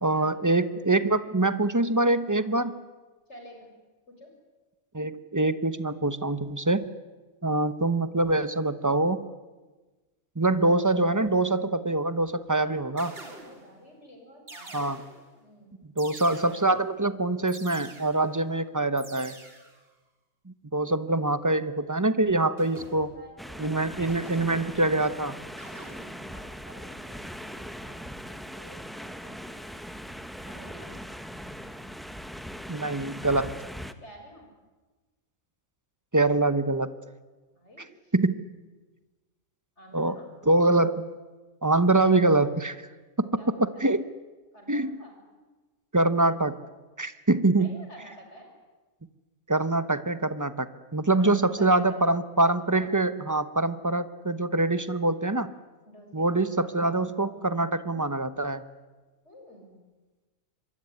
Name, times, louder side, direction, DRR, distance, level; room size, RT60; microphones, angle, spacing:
voice 1, 0.0-2.8 4.9-6.8 7.4-9.2 10.4-13.1 14.7-15.0 16.0-19.4 20.7-23.1 23.6-25.4 32.7-33.5 36.1-36.9 38.1-38.4 39.9-40.2 40.5-41.1 41.6-42.8 43.2-43.3 43.6-44.1 44.7-45.0 45.9-46.6 47.0-47.8 49.5-50.7 50.9-55.5 56.1-58.6, right 2 dB, 15° right, 13 dB, 0.9 m, -24 dB
voice 2, 3.3-3.7 4.1-4.3 12.6-15.0 15.4-15.8 22.7-22.8 23.1-24.5 25.7-29.7 30.5-31.0 34.0-34.5 37.5-38.1 39.8-40.3 43.2-43.8 44.5-45.2 47.6-48.5 51.2-51.8 55.9-56.4 59.2-59.8, equal, 55° left, 2 dB, 6.7 m, -51 dB
sound 1, 12.2-12.5 13.0-13.8 14.5-15.4 16.0-16.9 17.5-18.4 19.0-19.8 22.6-23.3 24.1-24.9 25.6-26.3, right 2 dB, 45° right, 3.5 m, -47 dB
sound 2, 23.4-33.9, equal, ahead, 1.2 m, -40 dB
25.5 x 22.5 x 9.8 m, 1.3 s
omnidirectional pair, 1.4 m